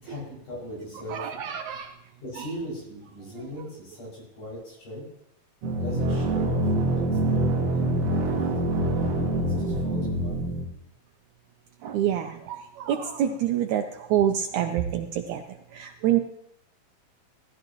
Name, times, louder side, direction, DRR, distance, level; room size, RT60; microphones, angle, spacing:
voice 1, 0.0-1.4 2.2-5.1 5.7-7.9 8.2-8.8 9.3-10.4, equal, 65° left, -5 dB, 7.8 m, -39 dB
voice 2, 1.1-1.9 2.4-2.5 3.6-3.7 11.8-16.2, right 10 dB, 75° right, 6 dB, 1.8 m, -27 dB
sound 1, 5.6-10.6, right 1 dB, 55° right, 2.5 m, -25 dB
16.0 x 14.5 x 3.0 m, 0.78 s
omnidirectional pair, 3.9 m